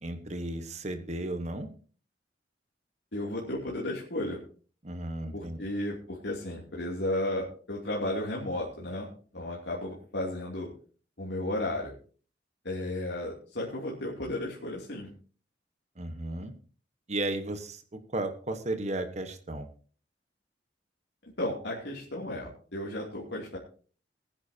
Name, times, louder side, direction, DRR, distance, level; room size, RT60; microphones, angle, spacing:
voice 1, 0.0-1.7 4.8-5.6 16.0-16.5 17.1-19.7, right 2 dB, 40° right, 8 dB, 1.2 m, -34 dB
voice 2, 3.1-4.4 5.3-10.7 11.2-11.9 12.6-15.1 21.4-23.6, left 1 dB, 75° left, -3 dB, 2.8 m, -34 dB
20.0 x 10.0 x 2.8 m, 0.41 s
head